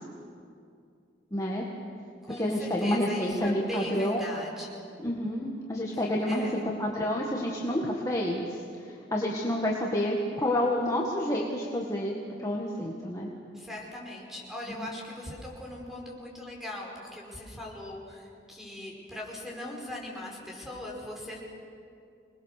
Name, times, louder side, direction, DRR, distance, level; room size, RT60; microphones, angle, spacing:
voice 1, 1.3-1.6 2.4-4.2 5.0-13.3 14.8-14.9, left 1 dB, 20° left, -3 dB, 1.8 m, -29 dB
voice 2, 2.3-4.8 6.3-6.6 13.5-21.4, left 1 dB, ahead, -2 dB, 5.1 m, -40 dB
27.0 x 20.5 x 6.7 m, 2.4 s
head